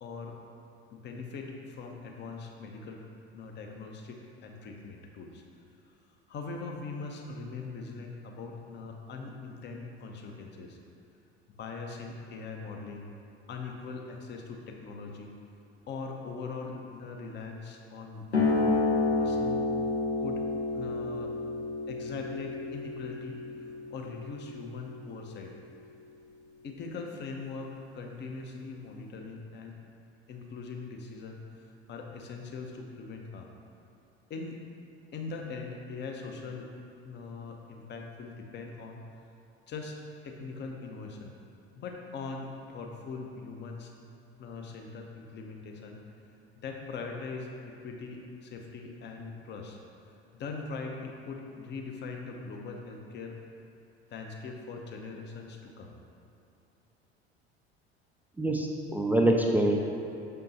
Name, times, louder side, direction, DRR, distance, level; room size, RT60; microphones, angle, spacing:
voice 1, 0.0-0.4 0.9-3.0 3.3-5.4 6.3-10.8 11.6-13.1 13.5-15.3 15.9-18.3 19.1-19.7 20.2-20.4 20.7-21.3 21.9-25.6 26.6-29.8 30.3-33.5 34.3-34.6 35.1-36.7 37.0-39.0 39.7-41.4 41.8-43.9 44.4-46.0 46.6-49.8 50.4-53.4 54.1-56.0, left 4 dB, 35° left, 2 dB, 0.8 m, -41 dB
sound 1, 18.3-25.5, left 3 dB, 90° left, 0.8 m, -30 dB
voice 2, 58.4-59.8, right 1 dB, 5° right, 0 dB, 0.3 m, -25 dB
6.7 x 5.3 x 2.8 m, 2.7 s
figure-of-eight pair, 65°, 32 cm